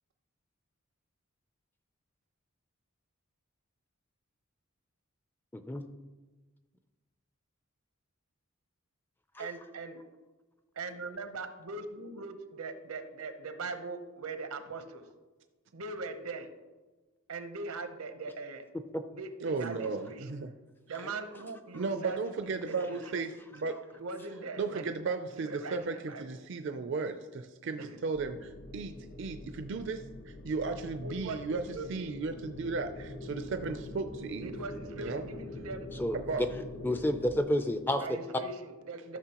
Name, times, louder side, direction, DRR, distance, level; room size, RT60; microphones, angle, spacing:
voice 1, 9.4-10.0 10.8-15.1 15.7-16.5 17.3-18.7 19.1-20.2 20.9-23.3 23.9-24.9 25.3-26.4 27.8-27.9 31.0-31.9 34.4-35.9 38.0-39.2, right 3 dB, 85° right, 8 dB, 0.9 m, -41 dB
voice 2, 19.4-20.1 21.7-23.7 24.6-28.9 29.2-31.6 31.9-34.5 35.0-35.2 36.1-36.4, right 4 dB, 55° right, 7 dB, 0.4 m, -35 dB
sound 1, 28.1-37.4, left 1 dB, 50° left, 0.9 m, -44 dB
voice 3, 36.0-36.5 36.8-38.1, left 1 dB, 10° left, 8 dB, 0.3 m, -29 dB
13.5 x 6.1 x 2.9 m, 1.2 s
head